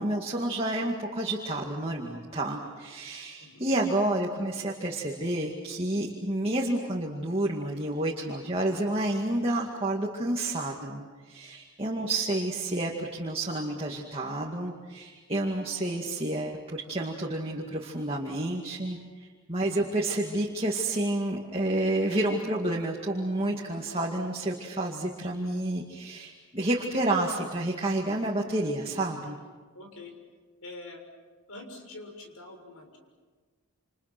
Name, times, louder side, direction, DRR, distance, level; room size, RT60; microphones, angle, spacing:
voice 1, 0.0-29.4, right 1 dB, 25° right, -1 dB, 2.2 m, -30 dB
voice 2, 11.8-12.2 19.7-19.9 29.7-30.1 30.6-31.0 31.5-33.0, left 2 dB, 75° left, 3 dB, 6.6 m, -45 dB
29.0 x 28.5 x 6.2 m, 1.4 s
head